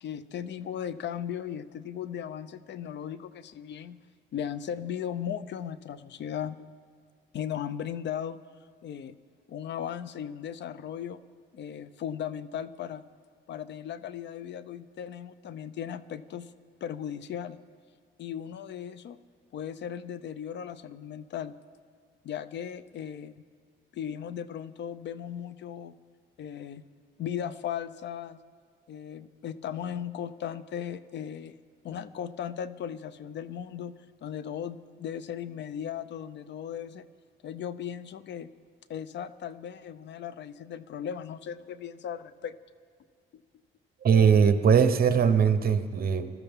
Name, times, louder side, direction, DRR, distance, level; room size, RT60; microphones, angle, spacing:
voice 1, 0.0-4.0 4.3-6.6 7.3-8.4 8.8-9.1 9.5-11.2 11.5-13.0 13.5-16.5 16.8-17.6 18.2-19.2 19.5-21.5 22.2-23.4 23.9-25.9 26.4-26.8 27.2-28.4 28.9-31.5 31.8-37.0 37.4-38.5 38.9-42.5, left 9 dB, 65° left, 15 dB, 0.6 m, -37 dB
voice 2, 44.0-46.3, right 7 dB, 50° right, 10 dB, 0.9 m, -21 dB
20.0 x 13.0 x 3.6 m, 2.1 s
cardioid pair, 90°, 20 cm